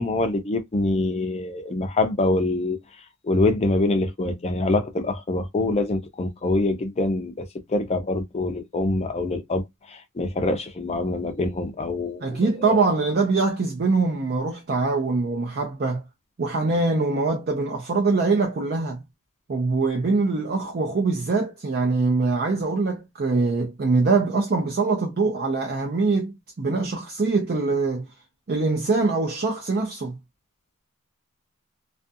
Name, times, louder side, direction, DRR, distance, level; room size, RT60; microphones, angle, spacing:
voice 1, 0.0-2.8 3.2-12.8, left 2 dB, 30° left, 0.5 m, -25 dB
voice 2, 12.2-16.0 16.4-19.0 19.5-28.1 28.5-30.2, right 3 dB, 45° right, 0.5 m, -23 dB
2.4 x 2.3 x 2.5 m
head